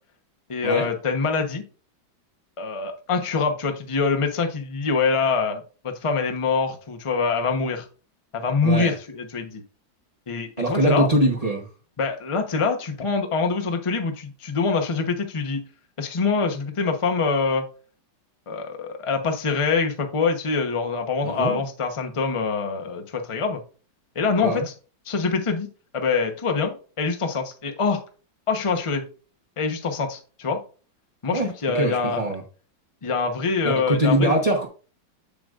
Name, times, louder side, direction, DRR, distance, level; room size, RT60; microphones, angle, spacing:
voice 1, 0.5-1.6 2.6-7.8 8.3-9.6 10.3-11.1 12.0-15.6 16.0-17.6 18.5-23.6 24.1-24.7 25.0-25.7 25.9-28.0 28.5-29.0 29.6-30.6 31.2-32.2 33.0-34.4, left 4 dB, 30° left, 4 dB, 0.6 m, -24 dB
voice 2, 8.6-8.9 10.6-11.7 21.2-21.6 24.4-24.7 31.3-31.5 31.7-32.4 33.9-34.7, right 1 dB, 30° right, -1 dB, 0.8 m, -22 dB
7.7 x 7.0 x 2.5 m, 0.36 s
omnidirectional pair, 2.2 m